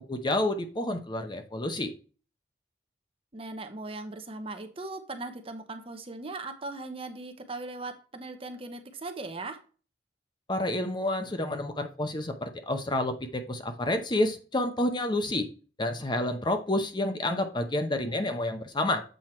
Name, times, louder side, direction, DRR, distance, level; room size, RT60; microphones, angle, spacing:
voice 1, 0.0-1.9 10.5-15.5 15.8-19.0, left 1 dB, 25° left, 7 dB, 0.8 m, -29 dB
voice 2, 3.3-9.6, right 2 dB, 30° right, 7 dB, 0.9 m, -39 dB
7.8 x 4.5 x 4.4 m, 0.37 s
head